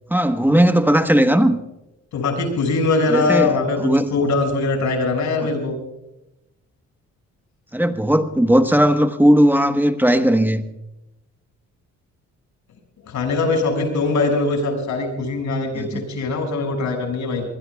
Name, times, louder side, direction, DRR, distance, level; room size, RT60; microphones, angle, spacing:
voice 1, 0.1-1.6 3.1-3.5 3.8-4.1 7.7-10.7 15.7-16.0, equal, 5° right, 8 dB, 1.2 m, -17 dB
voice 2, 2.1-5.8 13.1-17.4, left 3 dB, 70° left, 4 dB, 6.2 m, -21 dB
23.5 x 21.0 x 2.3 m, 0.92 s
cardioid pair, 90°, 30 cm